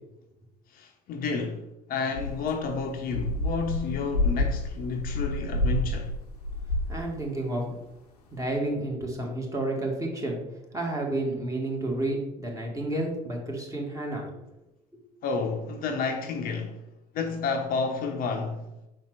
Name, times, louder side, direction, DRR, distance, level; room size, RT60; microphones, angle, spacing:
voice 1, 0.7-6.1 15.2-16.8 17.1-18.6, left 4 dB, 45° left, 0.8 m, -30 dB
sound 1, 2.2-7.2 7.4-7.5 8.4-8.5, left 2 dB, 80° left, 0.8 m, -29 dB
voice 2, 6.9-7.8 8.3-10.4 10.7-14.3, right 1 dB, 15° right, 1.9 m, -30 dB
5.1 x 4.2 x 4.7 m
figure-of-eight pair, 60°, 20 cm